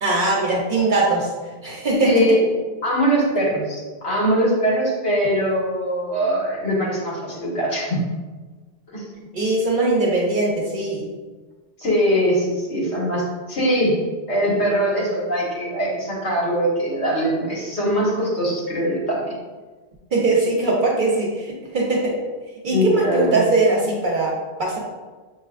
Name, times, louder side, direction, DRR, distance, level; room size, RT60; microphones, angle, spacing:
voice 1, 0.0-1.3 1.6-2.2 9.3-11.1 20.1-22.1 22.6-24.3 24.6-24.8, right 2 dB, 55° right, -2 dB, 0.8 m, -20 dB
voice 2, 2.0-2.4 2.8-8.0 8.9-9.0 11.8-14.0 14.3-19.3 22.7-23.4, equal, 90° left, -5 dB, 1.7 m, -22 dB
6.4 x 2.8 x 2.4 m, 1.3 s
omnidirectional pair, 1.1 m